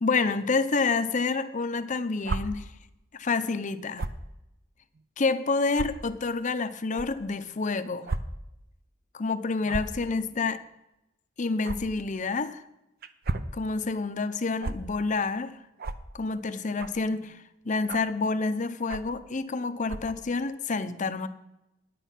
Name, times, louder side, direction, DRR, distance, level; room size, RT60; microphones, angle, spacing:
voice 1, 0.0-2.7 3.1-4.1 5.2-8.2 9.1-10.6 11.4-12.6 13.5-15.6 16.1-21.3, left 4 dB, 40° left, 0.6 m, -28 dB
sound 1, 2.2-2.4 4.0-4.2 4.9-5.0 5.7-5.9 6.9-7.1 8.1-8.2 8.5-8.7 9.6-10.0 11.6-11.8 13.0-13.5 14.6-14.7 15.8-16.0 16.8-17.0 17.9-18.1 18.9-19.2 19.8-20.1, right 3 dB, 50° right, 0.6 m, -32 dB
9.9 x 9.1 x 5.8 m
head